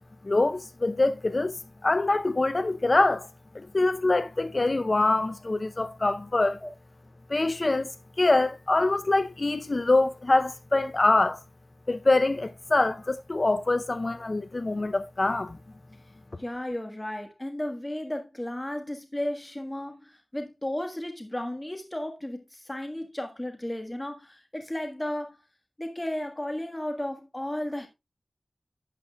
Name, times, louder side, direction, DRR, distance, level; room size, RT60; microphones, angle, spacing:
voice 1, 0.2-1.5 1.8-3.3 3.5-6.6 7.3-7.9 8.2-11.4 11.9-15.6, left 2 dB, 50° left, 0.6 m, -24 dB
voice 2, 16.4-25.4 25.8-27.9, left 1 dB, 20° left, 1.5 m, -34 dB
11.5 x 8.4 x 2.3 m
wide cardioid pair, 50°, 0 cm